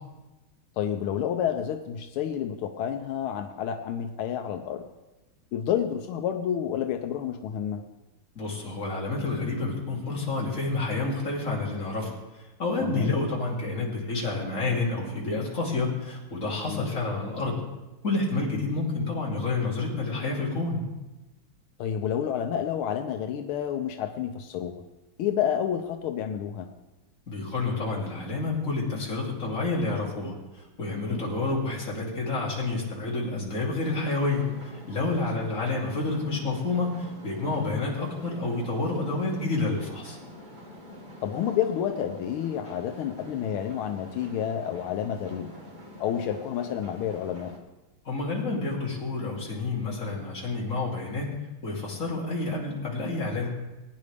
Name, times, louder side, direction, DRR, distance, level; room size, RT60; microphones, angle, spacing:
voice 1, 0.8-4.8 5.5-7.8 12.8-13.1 16.7-16.8 21.8-24.8 25.2-26.7 31.1-31.2 41.2-45.5 46.0-47.5, left 9 dB, 85° left, 5 dB, 1.6 m, -29 dB
voice 2, 8.3-12.1 12.6-17.6 18.0-20.8 27.3-30.3 30.8-40.2 48.0-51.3 51.6-53.5, left 3 dB, 35° left, -4 dB, 3.1 m, -29 dB
sound 1, 33.8-47.6, equal, 25° right, 1.3 m, -46 dB
21.0 x 9.6 x 3.4 m, 1.1 s
omnidirectional pair, 2.3 m